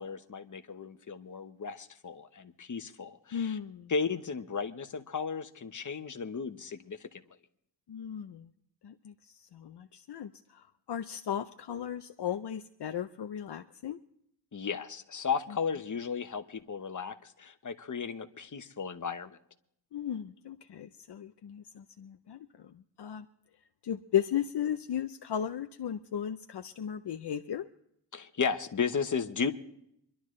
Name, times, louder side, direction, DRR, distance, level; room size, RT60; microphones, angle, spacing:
voice 1, 0.0-3.6 3.9-7.2 14.5-19.4 28.1-29.5, left 5 dB, 45° left, 1.0 m, -35 dB
voice 2, 3.3-3.9 7.9-8.5 8.8-9.1 9.5-14.0 19.9-22.4 23.0-23.3 23.8-27.7, left 9 dB, 65° left, 0.7 m, -35 dB
25.5 x 12.0 x 3.2 m
wide cardioid pair, 105°, 44 cm